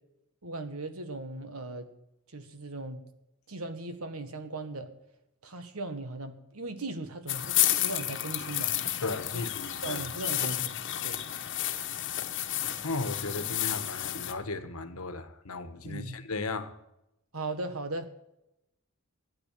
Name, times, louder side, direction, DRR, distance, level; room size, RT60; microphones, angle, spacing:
voice 1, 0.4-1.9 2.3-3.0 3.5-4.9 5.4-8.8 9.3-9.4 9.8-11.2 15.8-16.2 17.3-18.1, right 2 dB, 70° right, 1.7 m, -38 dB
sound 1, 7.3-14.3, left 12 dB, 55° left, 1.4 m, -31 dB
voice 2, 9.0-10.3 11.7-11.8 12.8-16.7, left 3 dB, 75° left, 1.5 m, -36 dB
14.0 x 9.9 x 7.5 m
head